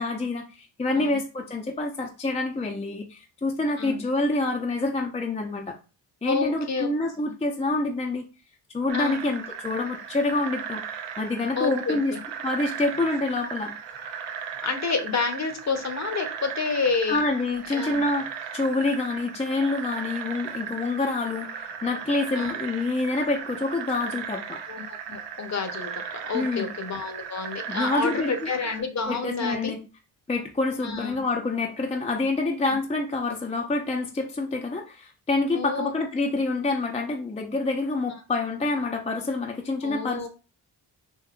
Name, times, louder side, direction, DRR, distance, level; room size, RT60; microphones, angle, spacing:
voice 1, 0.0-5.7 6.2-8.2 8.7-12.1 12.4-13.7 17.1-24.6 26.3-26.7 27.7-28.5 29.1-29.8 30.3-40.3, left 2 dB, 15° left, 2 dB, 0.6 m, -27 dB
voice 2, 6.2-6.9 8.9-9.2 11.6-12.2 14.6-17.2 17.7-18.0 22.3-22.6 24.7-29.7 30.8-31.2 35.5-35.9 39.8-40.3, left 4 dB, 40° left, 6 dB, 0.9 m, -29 dB
sound 1, 8.9-28.8, right 7 dB, 75° right, 0.7 m, -36 dB
3.6 x 2.6 x 2.4 m, 0.32 s
supercardioid pair, 50°, 43 cm